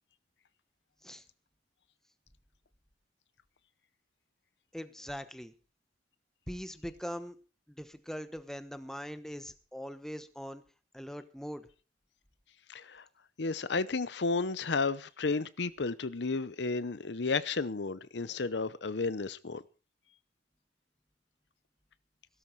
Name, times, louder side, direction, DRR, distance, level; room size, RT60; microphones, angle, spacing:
voice 1, 4.7-5.5 6.5-7.4 7.7-10.6 10.9-11.7, equal, 5° left, 1.1 m, -41 dB
voice 2, 12.7-13.0 13.4-19.6, left 4 dB, 75° left, 0.7 m, -32 dB
16.5 x 13.0 x 4.6 m
head